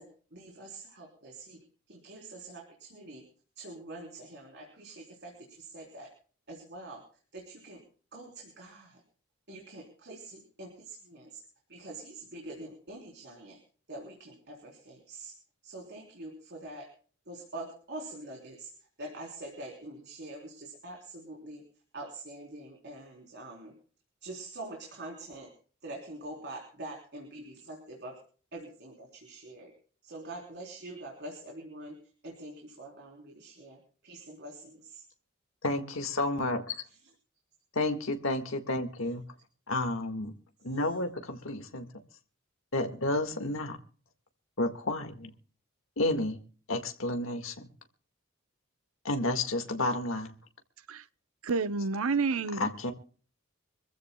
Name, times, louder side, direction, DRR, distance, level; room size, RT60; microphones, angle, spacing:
voice 1, 0.0-3.2 3.6-6.1 6.5-7.0 7.3-7.8 8.1-9.0 9.5-11.4 11.7-13.6 13.9-15.3 15.6-16.9 17.3-21.6 21.9-23.7 24.2-25.5 25.8-28.2 28.5-29.7 30.0-35.0 36.9-37.1 40.7-41.0, right 2 dB, 55° right, 3.9 m, -45 dB
voice 2, 35.6-36.7 37.7-39.2 39.7-40.3 40.6-41.9 42.7-43.8 44.6-45.3 46.0-46.4 46.7-47.7 49.0-50.3 52.6-52.9, left 2 dB, 70° left, 1.8 m, -31 dB
voice 3, 51.4-52.7, right 4 dB, 90° right, 0.8 m, -29 dB
26.0 x 15.0 x 2.3 m
head